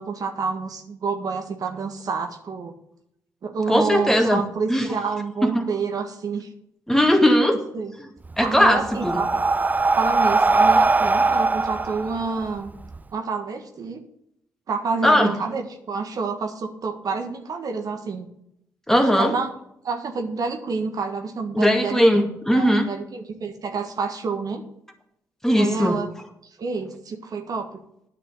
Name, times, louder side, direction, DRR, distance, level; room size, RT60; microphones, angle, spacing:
voice 1, 0.0-2.7 3.4-6.5 7.7-7.9 8.4-9.4 9.9-12.7 13.1-14.0 14.7-18.3 19.2-19.5 19.8-22.1 22.5-24.6 25.5-26.1 26.6-27.7, right 4 dB, 55° right, 5 dB, 1.5 m, -28 dB
voice 2, 3.7-4.4 4.7-4.9 5.4-5.7 6.9-7.6 8.0-8.1 8.4-9.2 15.0-15.3 18.9-19.3 21.5-22.9 25.4-26.0, equal, 5° left, 4 dB, 2.2 m, -19 dB
Breathing, 8.2-13.0, right 3 dB, 20° right, 0.5 m, -20 dB
9.6 x 5.9 x 8.6 m, 0.77 s
supercardioid pair, 50°, 7 cm